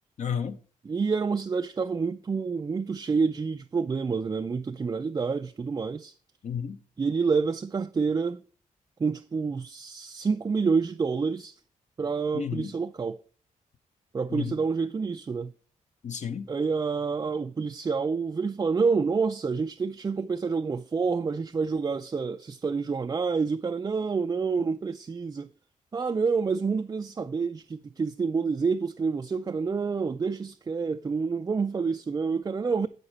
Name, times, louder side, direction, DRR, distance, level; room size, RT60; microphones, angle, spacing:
voice 1, 0.2-0.6 6.4-6.8 12.3-12.7 14.3-14.5 16.0-16.5, left 7 dB, 55° left, 0.8 m, -32 dB
voice 2, 0.9-6.1 7.0-8.4 9.0-11.5 12.0-13.2 14.1-15.5 16.5-25.5 25.9-32.9, right 5 dB, 25° right, 0.3 m, -28 dB
7.9 x 6.6 x 4.1 m
cardioid pair, 80°, 15 cm